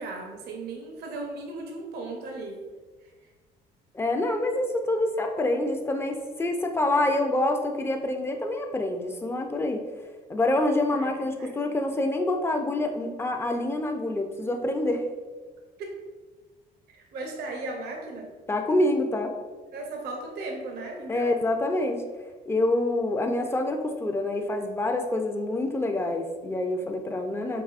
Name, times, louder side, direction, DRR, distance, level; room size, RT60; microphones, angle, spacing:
voice 1, 0.0-2.6 10.9-11.6 15.8-16.0 16.9-18.3 19.7-21.4, right 2 dB, 70° right, 2 dB, 0.6 m, -36 dB
voice 2, 3.9-9.9 10.3-15.1 18.5-19.3 21.1-22.0 22.5-27.6, left 1 dB, 15° left, 4 dB, 0.4 m, -26 dB
4.7 x 2.6 x 2.4 m, 1.4 s
cardioid pair, 110°, 17 cm